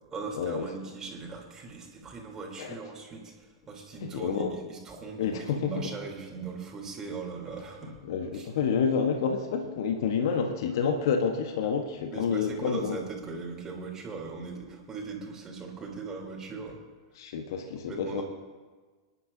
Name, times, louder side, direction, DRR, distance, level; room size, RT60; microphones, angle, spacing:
voice 1, 0.1-8.0 8.3-8.5 12.1-16.8 17.9-18.2, right 4 dB, 20° right, -1 dB, 3.7 m, -39 dB
voice 2, 4.0-4.5 5.2-5.9 8.0-13.0 17.2-18.2, left 6 dB, 55° left, 5 dB, 1.3 m, -29 dB
25.5 x 11.5 x 2.8 m, 1.4 s
figure-of-eight pair, 95°, 3 cm